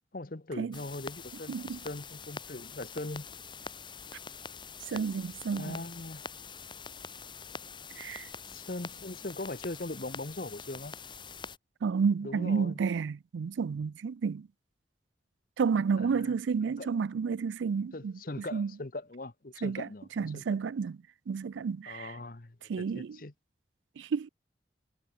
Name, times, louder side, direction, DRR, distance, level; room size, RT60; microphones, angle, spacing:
voice 1, 0.1-3.3 5.6-6.3 8.5-10.9 12.2-12.8 16.0-16.3 16.8-16.9 17.9-20.4 21.9-23.3, left 2 dB, 50° left, 1.0 m, -40 dB
sound 1, 0.7-11.6, left 5 dB, 25° left, 6.9 m, -45 dB
voice 2, 1.5-1.8 4.9-5.8 8.0-8.3 11.8-14.5 15.6-18.7 19.6-19.9 20.2-21.0 21.3-22.2 22.7-23.2 24.0-24.3, right 5 dB, 85° right, 0.4 m, -31 dB
head